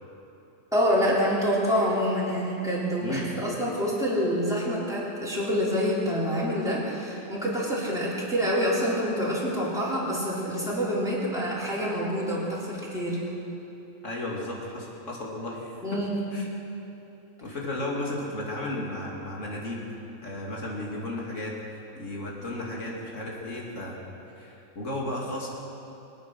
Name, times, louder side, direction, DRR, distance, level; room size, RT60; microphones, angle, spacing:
voice 1, 0.7-13.2 15.8-16.3, equal, ahead, -8 dB, 4.0 m, -27 dB
voice 2, 14.0-15.8 16.3-16.5 17.4-19.9 20.2-21.5 21.9-24.0 24.4-25.5, left 1 dB, 65° left, -3 dB, 2.9 m, -34 dB
24.0 x 9.4 x 6.2 m, 3.0 s
omnidirectional pair, 1.4 m